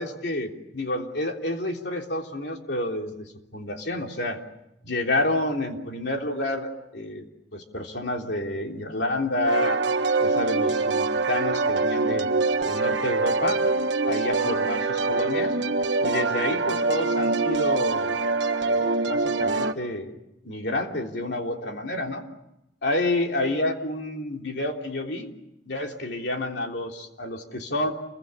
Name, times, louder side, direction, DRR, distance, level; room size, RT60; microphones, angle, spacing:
voice 1, 0.0-4.4 4.8-7.3 7.5-9.8 10.2-12.3 12.6-13.7 14.1-15.5 16.0-18.2 18.6-20.2 20.4-22.2 22.8-25.3 25.7-27.9, left 1 dB, 65° left, 2 dB, 3.5 m, -29 dB
sound 1, 9.5-19.7, right 3 dB, 80° right, 1.5 m, -24 dB
29.0 x 23.0 x 8.6 m, 0.86 s
head